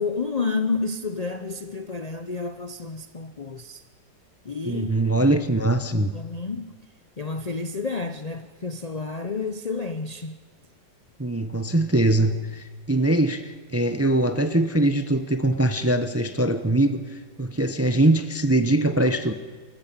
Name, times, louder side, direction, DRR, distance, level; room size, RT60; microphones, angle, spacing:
voice 1, 0.0-3.8 4.4-5.3 6.1-6.8 7.2-10.4, left 4 dB, 85° left, 0.3 m, -30 dB
voice 2, 4.7-6.1 11.2-19.3, right 1 dB, 20° right, 0.3 m, -22 dB
26.0 x 14.0 x 8.8 m
omnidirectional pair, 2.0 m